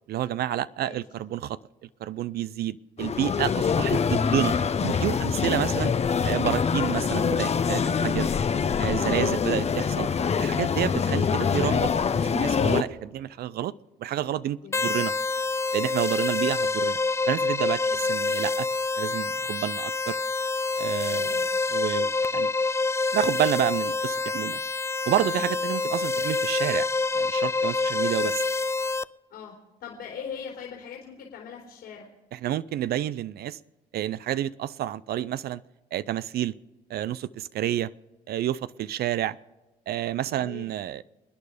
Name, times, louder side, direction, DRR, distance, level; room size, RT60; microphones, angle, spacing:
voice 1, 0.1-4.5 4.8-5.9 6.2-8.3 8.8-10.1 10.4-11.9 12.2-13.7 14.0-15.1 15.7-17.0 17.3-18.7 19.0-20.2 20.8-21.4 21.7-22.5 23.1-24.6 25.1-26.9 27.1-28.5 32.3-33.6 33.9-35.6 35.9-36.5 36.9-37.9 38.3-39.4 39.9-41.0, right 12 dB, 60° right, 0.5 m, -29 dB
sound 1, 3.0-12.8, left 6 dB, 35° left, 0.9 m, -25 dB
voice 2, 14.6-15.0 16.2-16.4 17.8-18.0 21.0-21.4 25.3-25.6 29.3-29.5 29.8-32.1 40.4-40.7, left 7 dB, 70° left, 3.5 m, -42 dB
sound 2, 14.7-29.0, left 3 dB, 15° left, 0.4 m, -27 dB
28.0 x 9.5 x 5.0 m
supercardioid pair, 75°, 18 cm